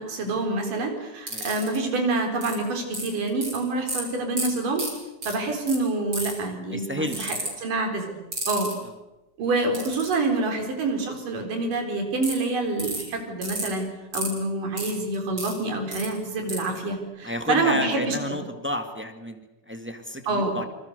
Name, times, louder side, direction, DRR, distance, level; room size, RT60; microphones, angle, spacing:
voice 1, 0.0-4.9 5.3-7.4 7.6-8.1 8.5-8.7 9.4-13.9 14.1-18.4 20.3-20.6, right 2 dB, 80° right, 4 dB, 5.9 m, -27 dB
sound 1, 1.3-1.8 2.4-2.5 2.9-3.6 3.9-4.0 4.4-4.5 4.8-4.9 5.2-5.3 5.7-5.8 6.1-6.4 7.1-7.5 8.3-8.7 9.7-10.1 12.2-12.3 12.8-13.0 13.4-13.7 14.1-14.3 14.8-15.5 15.9-16.1 16.5-16.6, right 1 dB, 30° right, 8.4 m, -30 dB
voice 2, 6.7-7.5 17.2-19.4 19.7-20.7, left 1 dB, 5° right, 6 dB, 1.1 m, -31 dB
27.5 x 26.0 x 6.8 m, 1.0 s
omnidirectional pair, 3.7 m